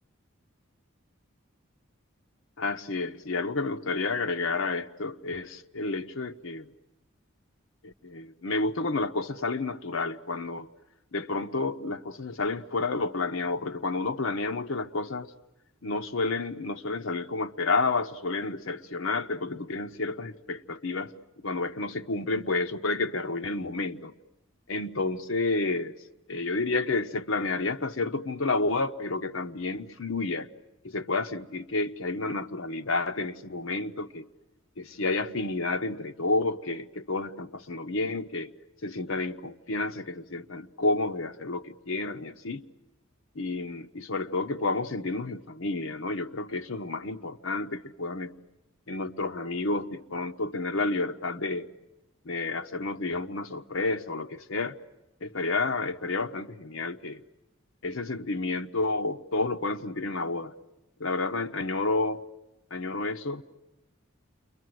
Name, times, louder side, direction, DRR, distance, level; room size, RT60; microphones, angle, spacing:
voice 1, 2.6-6.7 7.8-10.7 11.1-15.3 15.8-21.1 21.4-24.1 24.7-25.9 26.3-30.5 30.8-34.3 34.8-38.5 38.8-42.7 43.3-48.3 48.9-51.7 52.3-54.8 55.2-57.2 57.8-60.5 61.0-62.2 62.7-63.4, left 3 dB, 75° left, 0.9 m, -30 dB
29.5 x 23.0 x 7.8 m
head